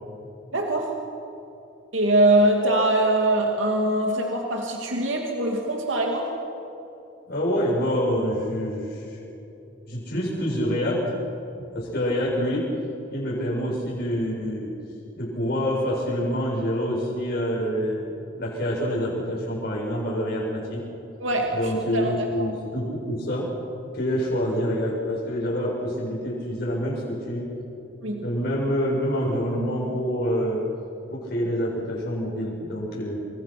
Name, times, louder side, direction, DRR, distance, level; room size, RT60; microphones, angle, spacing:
voice 1, 0.5-0.9 1.9-6.3 21.2-22.3 28.0-28.3, right 1 dB, 75° right, 1 dB, 2.6 m, -23 dB
voice 2, 7.3-9.2 9.9-11.0 11.5-12.7 13.1-14.7 15.2-20.8 21.5-23.5 23.9-27.5 28.2-30.6 31.1-33.2, equal, 50° left, -5 dB, 7.6 m, -26 dB
29.0 x 24.5 x 6.1 m, 2.9 s
head